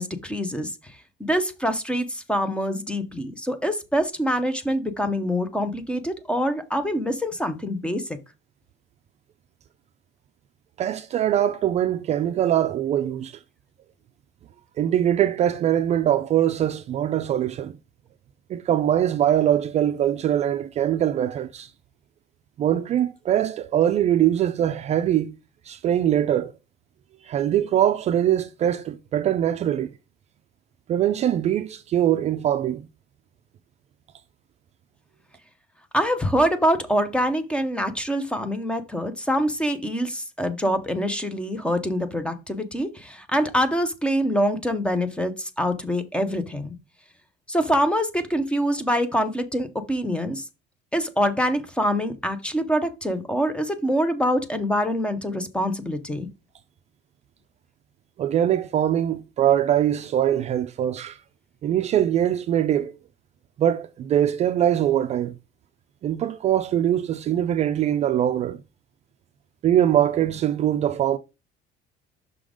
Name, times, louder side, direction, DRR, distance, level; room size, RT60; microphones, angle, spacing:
voice 1, 0.0-8.0 35.9-46.7 47.5-50.5 50.9-56.3, equal, 5° left, 0.6 m, -25 dB
voice 2, 10.8-13.4 14.8-17.8 18.5-21.7 22.6-25.3 25.7-26.5 27.2-29.9 30.9-32.9 58.2-61.2 61.6-62.9 63.6-65.3 66.0-68.6 69.6-71.2, right 11 dB, 35° right, 0.4 m, -22 dB
6.0 x 3.8 x 4.9 m
cardioid pair, 160°, 19 cm